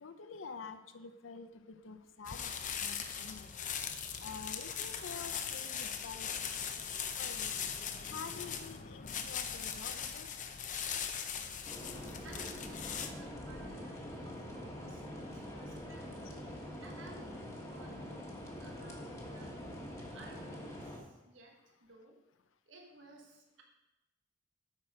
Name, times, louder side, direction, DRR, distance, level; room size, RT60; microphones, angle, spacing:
voice 1, 0.0-2.5 2.8-3.5 4.2-7.5 8.0-10.3, left 5 dB, 85° left, 0.6 m, -48 dB
sound 1, 2.3-13.1, left 7 dB, 40° left, 0.6 m, -40 dB
sound 2, 11.6-21.0, equal, 15° left, 1.6 m, -45 dB
voice 2, 12.2-19.6 20.1-22.2 22.7-23.6, right 1 dB, 75° right, 1.2 m, -57 dB
8.9 x 6.1 x 4.8 m
head